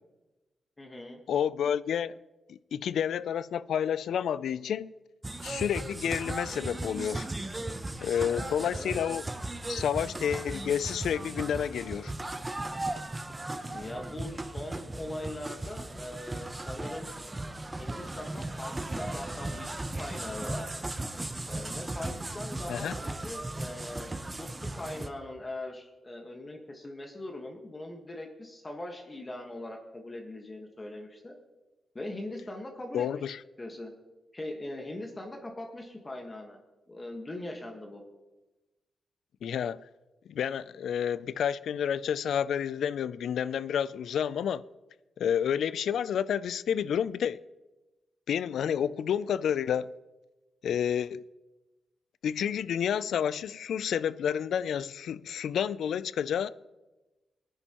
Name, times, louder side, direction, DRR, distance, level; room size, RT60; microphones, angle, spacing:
voice 1, 0.8-1.2 8.3-9.0 13.7-17.1 17.7-20.8 21.5-24.5 24.8-31.3 31.9-33.3 33.6-33.9 34.3-36.6 36.9-38.0, left 1 dB, 25° left, 1.4 m, -41 dB
voice 2, 1.3-2.2 2.5-4.9 5.4-7.3 8.0-9.2 9.7-12.1 13.7-13.9 22.7-22.9 32.9-33.4 39.4-39.8 40.3-44.6 45.2-47.4 48.3-49.9 50.6-51.2 52.2-56.5, left 8 dB, 90° left, 0.3 m, -30 dB
sound 1, 5.2-25.1, right 2 dB, 20° right, 0.7 m, -37 dB
19.5 x 10.0 x 3.0 m
cardioid pair, 100°, 0 cm